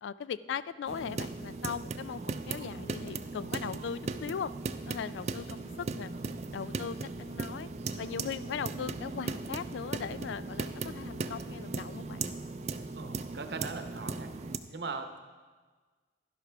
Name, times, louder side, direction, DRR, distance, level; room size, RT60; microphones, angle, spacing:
voice 1, 0.0-4.5 4.9-6.1 6.5-7.7 8.0-12.3, left 7 dB, 90° left, 17 dB, 0.3 m, -39 dB
sound 1, 0.9-14.6, right 3 dB, 40° right, 0.4 m, -38 dB
voice 2, 12.9-15.2, right 4 dB, 65° right, 7 dB, 0.8 m, -40 dB
11.5 x 11.5 x 3.4 m, 1.4 s
head